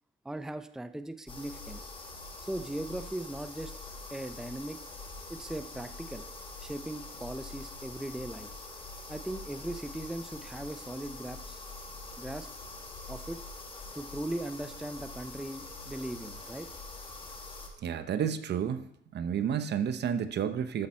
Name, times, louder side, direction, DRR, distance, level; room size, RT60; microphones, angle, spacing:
voice 1, 0.2-1.9 2.4-3.7 4.1-4.8 5.3-6.2 6.6-8.5 9.1-11.6 12.2-12.5 13.1-13.4 13.9-16.7, right 1 dB, ahead, 10 dB, 0.5 m, -39 dB
sound 1, 1.3-17.7, left 3 dB, 25° left, 1.9 m, -44 dB
voice 2, 17.8-18.9 19.1-20.9, right 8 dB, 60° right, 11 dB, 0.7 m, -30 dB
13.5 x 5.6 x 4.3 m, 0.76 s
cardioid pair, 90°, 20 cm